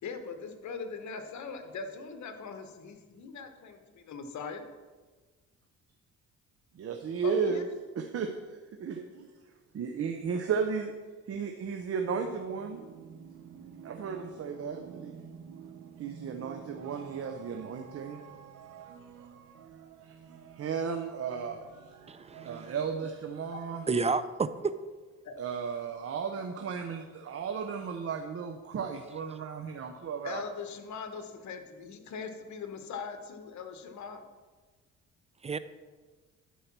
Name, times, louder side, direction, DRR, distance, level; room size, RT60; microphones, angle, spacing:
voice 1, 0.0-4.7 7.2-7.8 23.5-23.6 25.2-25.3 30.2-34.2, left 5 dB, 70° left, 7 dB, 1.2 m, -41 dB
voice 2, 6.7-7.6 8.0-8.3 8.8-9.3 9.7-10.9 11.3-12.8 13.8-15.1 16.0-18.2 20.0-20.1 20.6-21.6 22.4-23.9 25.4-30.4, right 6 dB, 50° right, 4 dB, 0.8 m, -34 dB
sound 1, 12.0-23.9, right 7 dB, 85° right, 0.9 m, -50 dB
voice 3, 22.1-22.7 23.9-24.7 35.4-35.6, right 4 dB, 20° right, 14 dB, 0.5 m, -30 dB
11.5 x 4.7 x 6.0 m, 1.3 s
cardioid pair, 90°, 30 cm